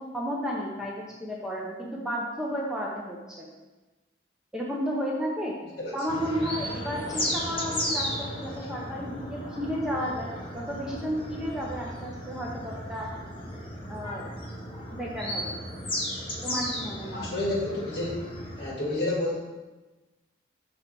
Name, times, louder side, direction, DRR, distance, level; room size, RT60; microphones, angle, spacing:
voice 1, 0.0-3.5 4.5-5.6 5.9-13.1 13.9-14.3 14.9-15.6 16.4-17.2, equal, 5° right, -3 dB, 0.6 m, -32 dB
sound 1, 6.1-18.7, left 1 dB, 30° left, 0.8 m, -35 dB
voice 2, 17.1-18.2 18.6-19.4, left 2 dB, 60° left, -5 dB, 2.0 m, -30 dB
5.5 x 3.9 x 4.6 m, 1.2 s
head